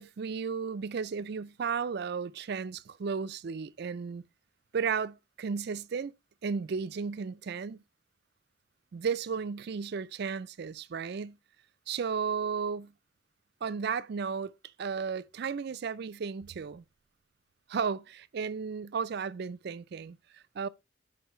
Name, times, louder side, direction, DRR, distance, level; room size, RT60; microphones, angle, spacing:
voice 1, 0.0-4.2 4.7-6.1 6.4-7.8 8.9-11.4 11.9-12.9 13.6-14.5 14.8-16.8 17.7-20.7, right 6 dB, 55° right, 0.4 m, -34 dB
7.9 x 5.2 x 3.0 m
head